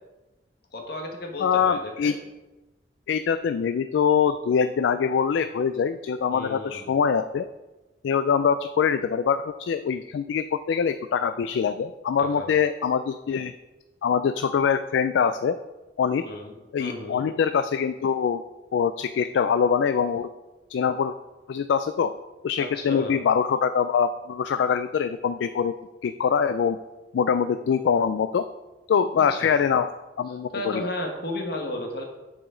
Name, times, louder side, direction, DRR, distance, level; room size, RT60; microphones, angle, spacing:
voice 1, 0.7-2.2 6.3-6.9 12.2-12.6 16.2-17.3 22.6-23.2 29.2-29.5 30.5-32.0, left 1 dB, 60° left, 2 dB, 1.4 m, -33 dB
voice 2, 1.4-2.2 3.1-7.5 8.0-13.5 14.0-15.6 16.0-16.2 16.7-18.4 18.7-20.3 20.7-21.1 21.5-22.1 22.4-25.7 26.0-26.8 27.1-28.5 28.9-29.9 30.2-30.8, left 7 dB, 75° left, 11 dB, 0.3 m, -24 dB
10.5 x 4.9 x 3.8 m, 1.1 s
head